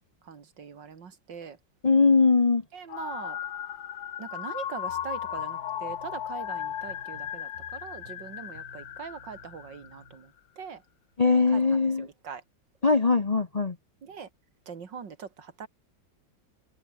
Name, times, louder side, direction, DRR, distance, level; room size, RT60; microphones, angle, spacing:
voice 1, 0.2-1.6 2.7-3.4 4.2-10.8 11.5-12.4 14.0-14.3 14.7-15.7, right 6 dB, 70° right, 2.8 m, -42 dB
voice 2, 1.8-2.6 11.2-12.1 12.8-13.8, left 4 dB, 40° left, 0.5 m, -21 dB
sound 1, 2.9-10.2, left 11 dB, 80° left, 1.8 m, -36 dB
sound 2, 4.9-10.2, right 2 dB, 30° right, 5.9 m, -54 dB
omnidirectional pair, 2.1 m